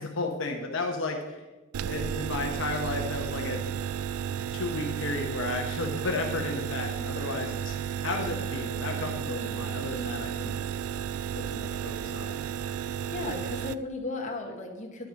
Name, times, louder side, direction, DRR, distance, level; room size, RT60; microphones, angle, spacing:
voice 1, 0.0-1.4 1.9-3.6 4.5-7.8 8.0-10.5 11.3-12.4, left 3 dB, 60° left, 2 dB, 0.9 m, -33 dB
sound 1, 1.7-13.7, right 8 dB, 90° right, 0.3 m, -33 dB
voice 2, 13.0-15.1, left 2 dB, 35° left, 2 dB, 1.2 m, -35 dB
10.5 x 6.0 x 5.1 m, 1.2 s
head